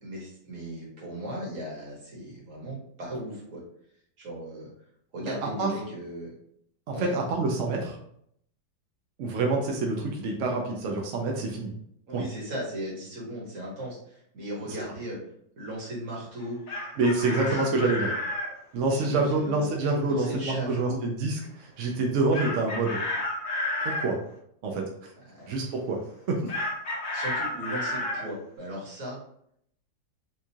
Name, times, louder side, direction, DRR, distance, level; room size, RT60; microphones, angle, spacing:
voice 1, 0.0-3.6 4.2-4.7 5.1-6.3 6.9-7.2 12.1-14.0 14.3-15.2 15.6-16.6 16.9-17.7 18.9-19.7 20.0-21.0 25.3-25.5 27.1-29.2, right 1 dB, 45° right, -4 dB, 1.5 m, -37 dB
voice 2, 5.2-5.7 6.9-8.0 9.2-11.7 12.1-12.2 14.7-14.8 17.0-18.1 18.7-23.0 23.8-24.2 24.6-25.1 25.5-26.0 26.3-26.5, right 3 dB, 75° right, 1 dB, 0.7 m, -27 dB
Chicken rooster, 16.4-18.5 22.3-24.1 26.5-28.3, left 2 dB, 50° left, 1.4 m, -31 dB
4.4 x 2.3 x 2.7 m, 0.69 s
omnidirectional pair, 2.0 m